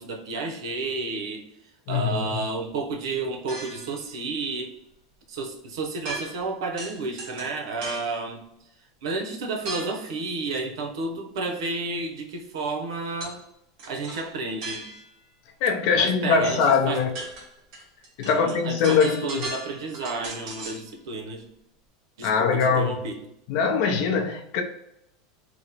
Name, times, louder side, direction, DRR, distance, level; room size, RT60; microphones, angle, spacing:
voice 1, 0.0-1.4 1.9-4.8 5.3-8.5 9.0-13.4 13.9-14.9 15.9-17.0 18.2-21.5 22.2-23.2, right 3 dB, 85° right, 0.7 m, -31 dB
voice 2, 1.9-2.4 15.6-17.1 18.2-19.4 22.2-23.0 23.5-24.6, left 5 dB, 55° left, 0.6 m, -22 dB
sound 1, 3.5-4.0 6.0-6.5 6.8-8.1 9.7-10.1 13.2-13.4 13.8-15.2 16.6-16.7 17.0-20.9, right 2 dB, 50° right, 1.2 m, -37 dB
3.0 x 2.1 x 3.9 m
supercardioid pair, 145°, 3 cm